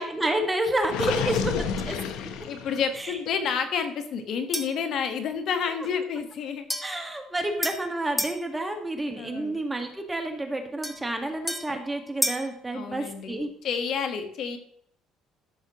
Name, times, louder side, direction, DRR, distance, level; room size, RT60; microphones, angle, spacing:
voice 1, 0.0-2.0 3.0-3.2 6.8-13.5, right 1 dB, 15° right, 4 dB, 1.6 m, -29 dB
Gurgling, 0.8-3.0, left 7 dB, 80° left, 0.9 m, -30 dB
voice 2, 2.2-6.7 9.2-9.6 12.7-14.6, left 6 dB, 60° left, 7 dB, 1.4 m, -30 dB
sound 1, 4.5-4.9 6.7-8.4 10.8-12.5, left 1 dB, 10° left, 1.1 m, -32 dB
13.5 x 6.5 x 3.0 m, 0.64 s
supercardioid pair, 85°, 0 cm